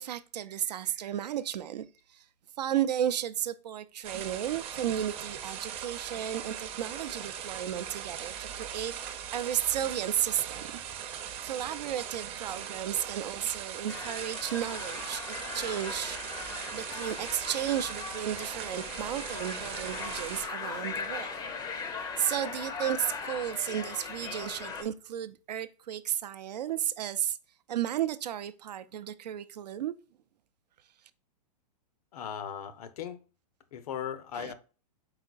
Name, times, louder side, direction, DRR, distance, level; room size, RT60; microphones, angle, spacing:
voice 1, 0.0-1.9 2.6-8.9 9.3-10.6 11.4-16.2 16.7-21.4 22.2-27.4 27.7-29.9 34.3-34.5, right 10 dB, 80° right, 0.4 m, -33 dB
sound 1, 4.0-20.5, right 9 dB, 30° right, 0.6 m, -40 dB
sound 2, 13.9-24.8, left 5 dB, 20° left, 0.5 m, -39 dB
voice 2, 32.1-33.2 33.7-34.5, left 8 dB, 65° left, 0.6 m, -38 dB
4.9 x 3.7 x 2.3 m
hypercardioid pair, 125°, 21 cm